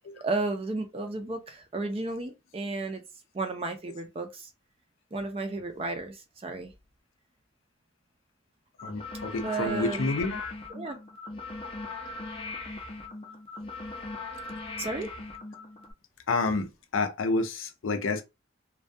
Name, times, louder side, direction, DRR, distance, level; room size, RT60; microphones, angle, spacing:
voice 1, 0.2-3.0 3.3-4.5 5.1-6.7 9.4-10.1 10.7-11.0 14.8-15.1, right 3 dB, 30° right, 0.4 m, -33 dB
voice 2, 8.8-10.5 16.3-18.2, left 3 dB, 90° left, 0.5 m, -29 dB
sound 1, 8.8-15.9, left 3 dB, 25° left, 0.5 m, -39 dB
2.2 x 2.2 x 2.6 m
head